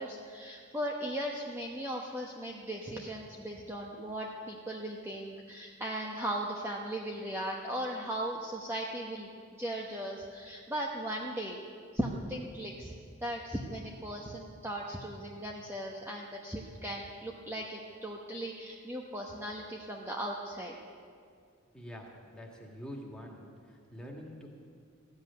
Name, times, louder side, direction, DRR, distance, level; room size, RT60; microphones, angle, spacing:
voice 1, 0.0-11.6 11.9-12.9 13.2-20.8, right 1 dB, 10° right, -1 dB, 1.0 m, -37 dB
voice 2, 21.7-24.5, equal, 5° left, -2 dB, 2.1 m, -46 dB
15.0 x 8.2 x 9.9 m, 2.2 s
head